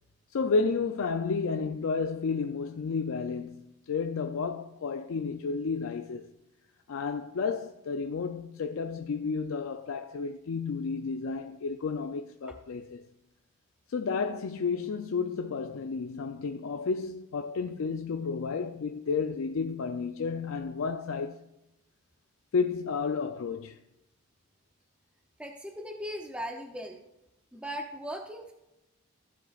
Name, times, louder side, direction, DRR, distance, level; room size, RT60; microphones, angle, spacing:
voice 1, 0.3-6.3 6.9-13.1 13.9-21.4 22.5-23.8, left 5 dB, 75° left, 0.4 m, -31 dB
voice 2, 25.4-27.0 27.5-28.5, equal, 5° right, 0.6 m, -38 dB
15.5 x 7.5 x 2.4 m
head